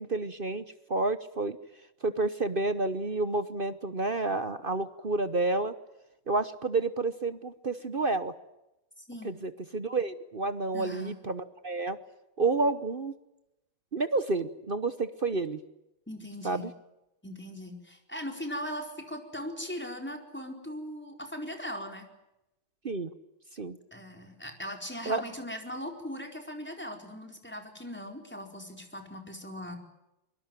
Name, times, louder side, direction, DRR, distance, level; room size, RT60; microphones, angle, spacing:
voice 1, 0.0-1.6 2.0-5.7 6.3-8.3 9.2-12.0 12.4-13.1 13.9-15.6 16.4-16.7 22.8-23.1 23.5-23.8 25.1-25.2, right 3 dB, 45° right, 12 dB, 0.7 m, -30 dB
voice 2, 9.0-9.3 10.7-11.1 16.1-16.7 17.2-22.1 23.9-29.8, equal, 5° left, 3 dB, 4.4 m, -39 dB
24.0 x 23.0 x 9.2 m, 0.92 s
omnidirectional pair, 2.4 m